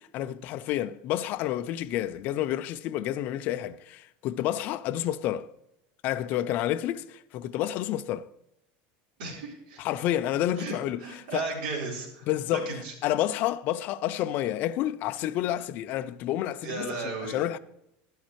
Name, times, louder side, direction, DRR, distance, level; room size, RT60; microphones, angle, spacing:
voice 1, 0.1-5.5 6.0-8.3 9.8-11.5 12.3-12.7 13.0-17.6, left 12 dB, 35° left, 0.4 m, -29 dB
voice 2, 9.2-9.8 10.6-12.9 16.6-17.4, right 4 dB, 80° right, 4.1 m, -35 dB
11.5 x 11.5 x 3.1 m
supercardioid pair, 175°, 5 cm